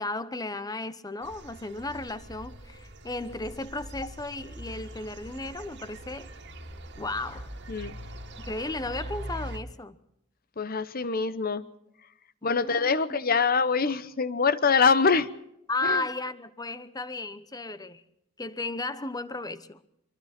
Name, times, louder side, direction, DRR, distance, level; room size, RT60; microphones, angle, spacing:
voice 1, 0.0-6.3 7.0-7.5 8.4-10.0 12.4-13.4 15.7-18.0 18.4-19.8, left 2 dB, 20° left, 0.9 m, -34 dB
sound 1, 1.2-9.6, right 1 dB, 60° right, 2.2 m, -42 dB
voice 2, 10.6-11.6 12.4-15.3 15.8-16.0, left 5 dB, 50° left, 1.0 m, -24 dB
25.0 x 23.5 x 4.4 m
head